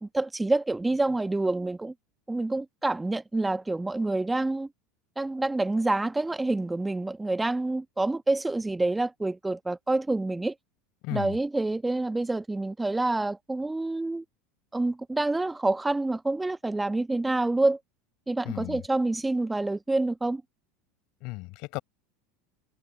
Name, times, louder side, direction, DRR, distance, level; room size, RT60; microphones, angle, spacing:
voice 1, 0.0-1.9 2.3-4.7 5.2-10.5 11.1-14.2 14.7-17.8 18.3-20.4, right 2 dB, 10° right, 1.3 m, -27 dB
voice 2, 11.0-11.4 18.5-18.8 21.2-21.8, left 25 dB, 60° left, 5.2 m, -35 dB
hypercardioid pair, 80°, 0 cm